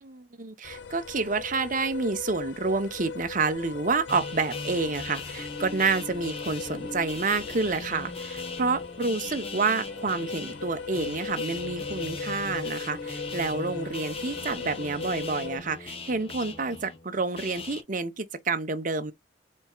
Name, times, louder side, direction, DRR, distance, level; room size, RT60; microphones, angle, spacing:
voice 1, 0.0-19.1, right 4 dB, 45° right, 0.9 m, -29 dB
sound 1, 0.6-15.6, left 5 dB, 70° left, 0.6 m, -38 dB
sound 2, 4.1-17.8, left 3 dB, 30° left, 1.1 m, -39 dB
4.4 x 4.4 x 2.4 m
head